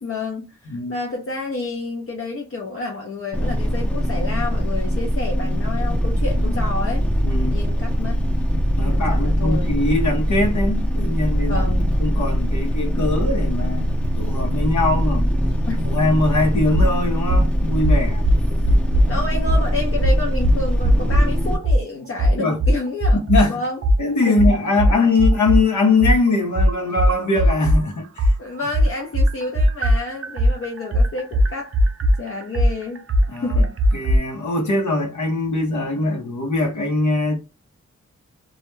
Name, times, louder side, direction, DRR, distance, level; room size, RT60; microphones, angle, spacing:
voice 1, 0.0-7.1 7.4-8.2 8.8-9.7 11.4-11.9 15.7-15.8 18.6-18.7 19.1-23.2 23.5-23.8 24.3-24.4 24.8-24.9 28.4-31.7 32.2-33.1 33.4-33.7, left 2 dB, 50° left, 0.6 m, -29 dB
voice 2, 0.7-1.0 6.4-6.6 7.2-7.7 8.8-11.7 12.0-15.3 15.8-18.3 19.0-19.2 22.3-22.6 23.1-23.6 24.0-28.4 33.3-33.6 33.9-37.4, left 2 dB, 80° left, 0.8 m, -22 dB
sound 1, 3.3-21.6, equal, 5° left, 0.6 m, -22 dB
sound 2, 16.7-16.9 17.3-17.5 17.8-19.1 19.5-19.6 20.0-21.3 21.6-21.8 22.2-23.5 23.8-27.8 28.2-34.2, equal, 50° right, 0.5 m, -17 dB
2.3 x 2.2 x 3.0 m
wide cardioid pair, 75°, 30 cm